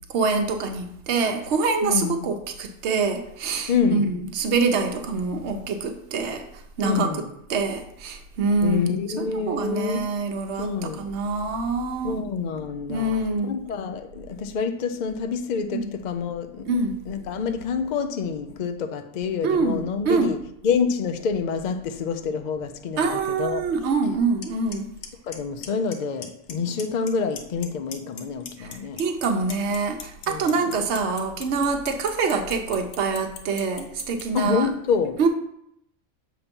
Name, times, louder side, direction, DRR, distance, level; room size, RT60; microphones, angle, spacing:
voice 1, 0.1-6.4 6.8-7.1 7.5-12.2 12.9-13.5 15.7-15.9 16.7-16.9 19.4-20.3 23.0-24.9 28.6-34.7 35.2-35.3, right 4 dB, 60° right, 5 dB, 1.0 m, -25 dB
voice 2, 1.8-2.3 3.7-4.2 6.8-7.3 8.6-10.1 10.6-11.1 12.0-13.1 13.4-16.6 17.1-20.4 20.6-23.6 25.2-29.0 30.3-30.8 34.3-35.2, left 5 dB, 65° left, 7 dB, 0.4 m, -27 dB
Clock, 24.4-24.5 24.7-25.1 25.3-25.9 26.2-26.5 26.8-27.7 27.9-34.2, left 8 dB, 80° left, 1.1 m, -36 dB
6.9 x 2.9 x 5.2 m, 0.76 s
omnidirectional pair, 1.3 m